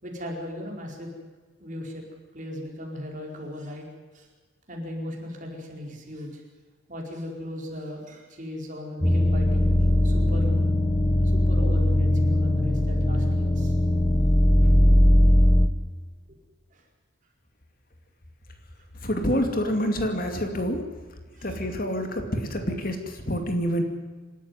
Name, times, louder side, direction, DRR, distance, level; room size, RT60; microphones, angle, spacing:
voice 1, 0.0-1.1 1.6-2.0 2.3-3.9 4.1-4.3 4.7-6.4 6.9-10.6 11.3-13.7 14.6-14.7 16.7-16.8 19.0-19.1 21.3-21.6, left 1 dB, 40° right, 0 dB, 4.8 m, -37 dB
sound 1, 9.0-15.7, left 1 dB, 15° left, 1.0 m, -20 dB
voice 2, 19.0-20.8 21.4-23.8, equal, 45° left, 5 dB, 2.5 m, -27 dB
26.5 x 13.0 x 9.6 m, 1.3 s
head